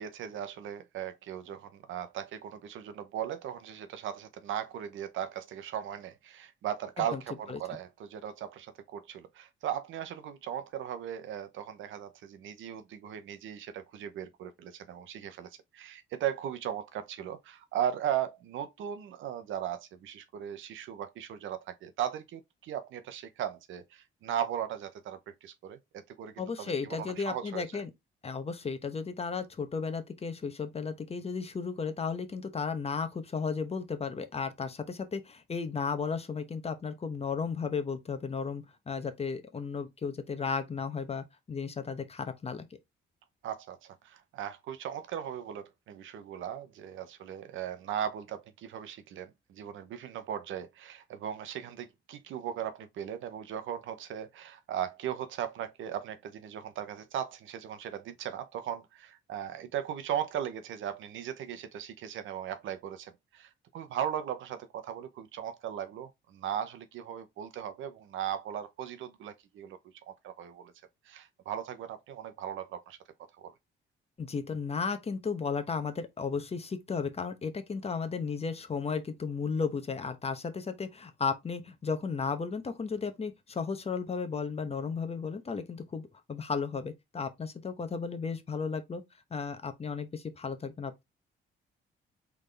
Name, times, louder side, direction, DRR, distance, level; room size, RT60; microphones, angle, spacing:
voice 1, 0.0-25.8 26.1-27.8 43.4-69.8 70.1-70.7 71.1-73.0 73.4-73.5, right 10 dB, 80° right, 0.8 m, -37 dB
voice 2, 26.4-27.9 28.2-42.7 74.2-89.0 89.3-90.9, left 5 dB, 30° left, 0.9 m, -34 dB
3.9 x 3.5 x 3.3 m
cardioid pair, 90°, 20 cm